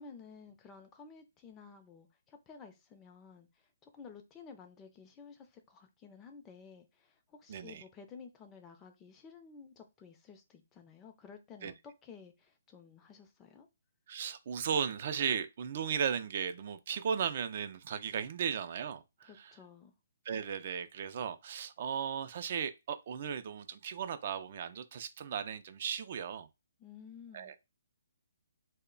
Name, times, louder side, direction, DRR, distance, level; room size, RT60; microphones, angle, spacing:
voice 1, 0.0-13.7 19.2-19.9 26.8-27.5, left 5 dB, 20° left, 0.5 m, -53 dB
voice 2, 7.5-7.8 11.6-11.7 14.1-19.6 20.3-26.5 27.3-27.6, right 7 dB, 50° right, 0.3 m, -36 dB
2.2 x 2.1 x 3.7 m
hypercardioid pair, 145°, 0 cm